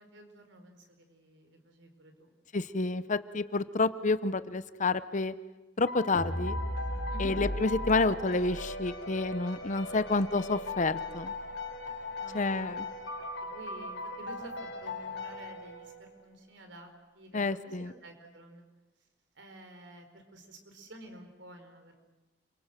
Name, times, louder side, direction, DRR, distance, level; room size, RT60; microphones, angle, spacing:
voice 1, 0.0-2.3 2.6-2.7 7.1-7.4 9.7-10.2 12.2-12.8 13.4-14.5 14.8-18.6 19.3-22.0, right 1 dB, 70° right, 5 dB, 4.4 m, -51 dB
voice 2, 2.5-5.3 5.8-6.6 7.2-11.3 12.3-12.9 17.3-17.9, left 3 dB, 40° left, 14 dB, 0.8 m, -29 dB
sound 1, 5.9-16.2, left 2 dB, 70° left, 3.7 m, -40 dB
sound 2, 6.1-12.4, equal, 25° left, 3.1 m, -39 dB
29.5 x 24.0 x 7.6 m, 1.2 s
head